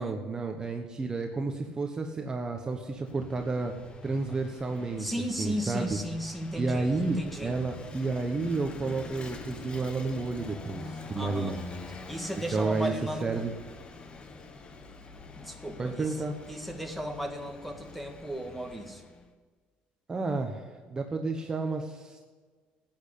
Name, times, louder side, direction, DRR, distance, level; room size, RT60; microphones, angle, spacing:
voice 1, 0.0-3.7 4.0-5.1 5.4-6.0 6.6-11.6 12.5-12.9 13.2-13.5 15.8-16.4 20.1-22.3, right 3 dB, 25° right, 4 dB, 1.2 m, -31 dB
Vehicle / Engine, 2.7-19.3, left 3 dB, 30° left, 1.4 m, -45 dB
voice 2, 5.0-7.6 11.1-11.6 12.1-13.4 15.4-16.2 16.5-19.0, equal, ahead, 5 dB, 1.8 m, -35 dB
13.5 x 9.0 x 8.4 m, 1.5 s
cardioid pair, 120°, 3 cm